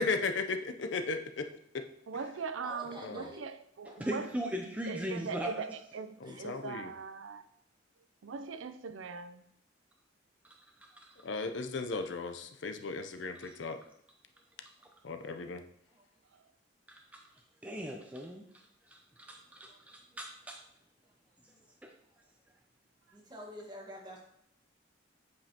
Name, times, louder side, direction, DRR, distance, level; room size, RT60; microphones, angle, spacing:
voice 1, 0.0-1.5 1.7-1.8 3.0-3.3 6.2-6.9 11.2-13.8 15.0-15.6, left 4 dB, 70° left, 0.6 m, -35 dB
voice 2, 2.1-4.3 4.8-7.4 8.2-9.4 16.3-16.5, right 5 dB, 85° right, 0.5 m, -41 dB
voice 3, 2.6-3.4 3.8-4.3 6.2-6.6 14.8-14.9 15.9-16.0 19.6-19.8 20.1-20.2 21.6-21.7 22.5-22.6 23.1-24.2, equal, 25° right, 1.3 m, -48 dB
voice 4, 4.0-5.5 10.4-10.5 10.8-11.1 13.4-13.6 16.9-17.2 17.6-18.4 18.9-20.6 21.8-21.9, equal, 10° right, 0.5 m, -39 dB
8.2 x 5.2 x 2.9 m
head